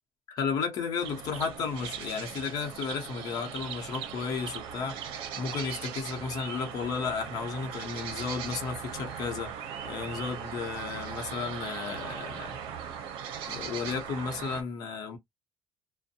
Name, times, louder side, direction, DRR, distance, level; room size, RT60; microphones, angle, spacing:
voice 1, 0.3-5.0 5.4-9.5 9.8-12.6 13.5-15.2, left 5 dB, 45° left, 0.8 m, -33 dB
sound 1, 1.0-14.6, right 8 dB, 90° right, 0.6 m, -39 dB
sound 2, 7.7-11.5, right 5 dB, 20° right, 0.5 m, -50 dB
2.5 x 2.1 x 2.7 m
cardioid pair, 175°, 9 cm